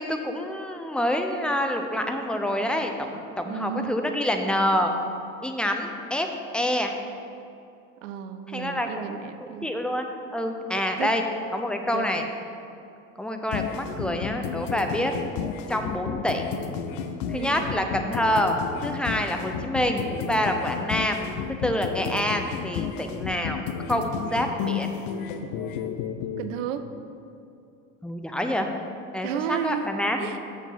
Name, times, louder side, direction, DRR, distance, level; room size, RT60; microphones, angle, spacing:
voice 1, 0.0-4.9 5.4-6.3 6.5-6.9 8.5-11.2 11.5-12.2 13.2-15.1 15.7-16.6 17.3-21.3 21.6-23.6 23.9-24.9 28.0-28.7 29.1-30.2, left 1 dB, ahead, 4 dB, 0.6 m, -27 dB
voice 2, 3.4-4.1 8.0-9.7 10.7-11.1 11.9-12.1 17.3-17.7 26.4-26.9 29.2-29.9 30.2-30.4, right 9 dB, 70° right, 10 dB, 0.6 m, -33 dB
sound 1, 13.5-26.4, left 7 dB, 55° left, 0.7 m, -32 dB
6.7 x 5.1 x 5.7 m, 2.6 s
hypercardioid pair, 70°, 40 cm